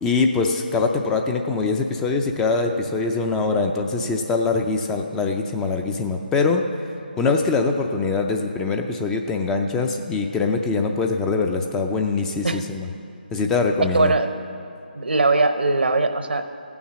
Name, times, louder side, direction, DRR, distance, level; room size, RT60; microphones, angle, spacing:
voice 1, 0.0-6.6 7.2-12.9 13.3-14.1, left 4 dB, 10° left, 4 dB, 0.4 m, -23 dB
voice 2, 13.8-14.3 14.9-16.4, right 3 dB, 80° right, 9 dB, 0.8 m, -20 dB
16.0 x 7.2 x 5.9 m, 2.6 s
figure-of-eight pair, 155°, 5 cm